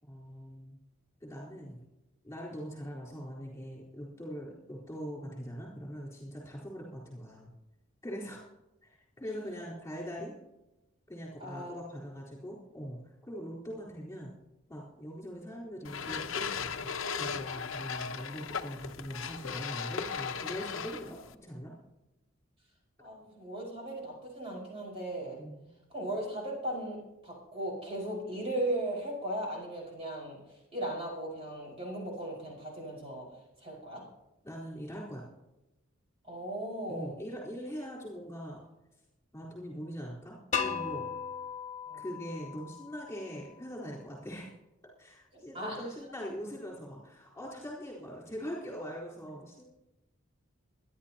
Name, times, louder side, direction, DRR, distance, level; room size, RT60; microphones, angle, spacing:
voice 1, 0.0-0.8 1.2-1.8 2.2-7.5 8.0-8.4 8.8-10.3 11.1-14.3 14.7-16.9 17.2-21.7 25.4-25.7 34.4-35.3 36.9-38.6 39.3-41.1 41.9-44.5 45.0-49.6, equal, 15° left, -5 dB, 4.1 m, -42 dB
voice 2, 11.4-11.7 23.0-25.4 25.9-33.3 33.6-34.0 36.2-37.1 41.9-42.0 45.3-45.8, right 1 dB, 30° right, -3 dB, 5.1 m, -37 dB
sound 1, 15.8-21.3, left 6 dB, 75° left, 0.8 m, -37 dB
sound 2, 40.5-43.4, left 6 dB, 35° left, 1.3 m, -37 dB
25.5 x 11.5 x 2.9 m, 0.97 s
head